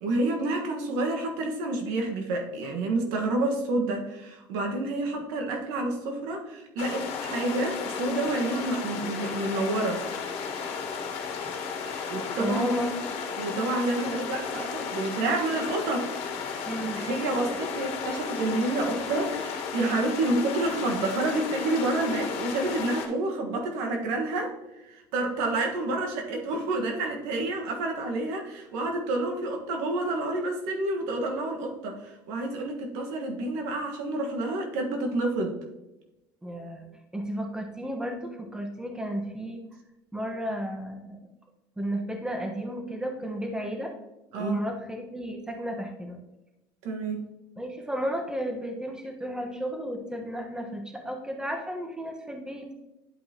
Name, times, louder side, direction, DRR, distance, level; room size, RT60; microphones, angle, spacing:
voice 1, 0.0-10.0 12.1-12.7 13.4-16.1 16.5-24.5 24.8-35.5 44.3-44.6 46.8-47.3, right 2 dB, 80° right, 2 dB, 1.6 m, -29 dB
sound 1, 6.8-23.1, left 6 dB, 65° left, 1.6 m, -34 dB
voice 2, 12.4-12.9 16.7-17.4 31.1-31.2 36.4-36.9 37.1-39.6 40.1-41.2 41.8-43.9 44.4-46.2 47.6-52.7, equal, 5° right, 3 dB, 1.3 m, -33 dB
10.5 x 5.2 x 2.9 m, 0.96 s
supercardioid pair, 105°, 11 cm